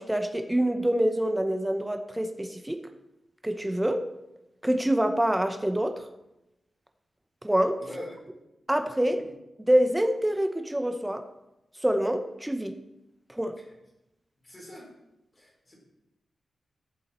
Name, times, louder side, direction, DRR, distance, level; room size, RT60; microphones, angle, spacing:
voice 1, 0.0-2.8 3.4-4.1 4.6-6.1 7.4-7.8 8.7-9.3 9.6-11.2 11.8-12.8 13.3-13.6, right 1 dB, 5° right, 8 dB, 0.8 m, -26 dB
voice 2, 7.8-8.2 9.0-9.2 14.4-14.9 15.4-15.7, left 1 dB, 25° left, -4 dB, 4.3 m, -43 dB
15.0 x 7.1 x 4.3 m, 0.93 s
wide cardioid pair, 145°, 0 cm